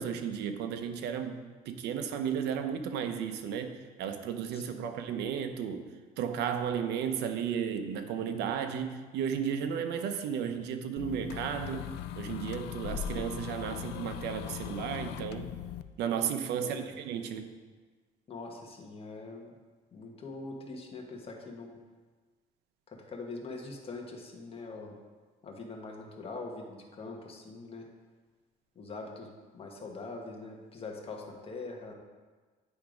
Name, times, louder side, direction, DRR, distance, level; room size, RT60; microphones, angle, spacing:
voice 1, 0.0-1.4 1.7-3.7 4.0-5.9 6.2-15.5 16.0-17.5, right 8 dB, 80° right, 7 dB, 0.8 m, -34 dB
voice 2, 4.5-4.9 16.6-16.9 18.3-19.5 19.9-21.8 22.9-25.0 25.4-27.9 28.7-31.9, left 3 dB, 35° left, 1 dB, 1.3 m, -43 dB
sound 1, 11.0-15.8, left 10 dB, 80° left, 0.4 m, -39 dB
9.3 x 3.5 x 5.0 m, 1.4 s
cardioid pair, 110°, 17 cm